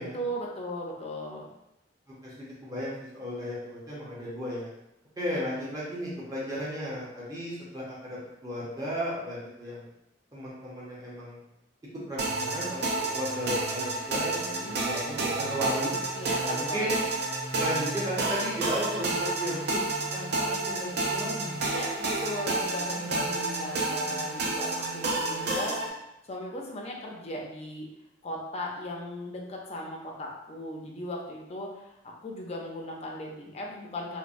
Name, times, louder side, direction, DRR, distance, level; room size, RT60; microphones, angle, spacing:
voice 1, 0.1-1.5 14.5-14.8 16.1-16.9 21.7-25.8 26.3-27.9 28.2-34.2, left 1 dB, 35° left, -1 dB, 0.4 m, -37 dB
voice 2, 2.2-4.7 5.2-9.9 10.3-11.4 12.1-16.0 16.4-17.0 17.6-19.8 20.1-21.6 22.9-23.2, equal, 20° right, -7 dB, 0.7 m, -35 dB
sound 1, 12.2-25.9, right 2 dB, 60° right, 0.4 m, -30 dB
3.0 x 2.0 x 2.5 m, 0.86 s
head